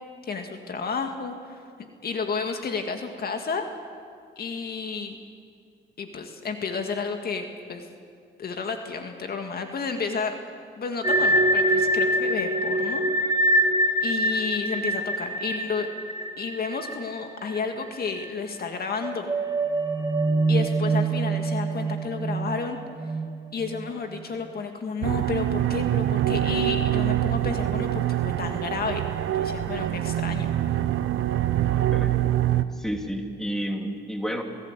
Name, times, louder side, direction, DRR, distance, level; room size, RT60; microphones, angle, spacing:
voice 1, 0.2-3.7 4.4-5.2 6.0-7.9 8.4-10.4 10.8-13.1 14.0-15.9 16.4-19.3 20.5-22.8 23.5-29.0 29.4-30.5, left 5 dB, 50° left, 5 dB, 2.1 m, -31 dB
sound 1, 11.0-17.9 18.2-18.3 18.8-24.2, right 1 dB, 20° right, 1.7 m, -25 dB
sound 2, 25.0-32.6, right 12 dB, 80° right, 0.9 m, -25 dB
voice 2, 31.9-34.4, equal, ahead, 3 dB, 2.8 m, -32 dB
26.0 x 16.5 x 8.3 m, 2.2 s
cardioid pair, 90°, 20 cm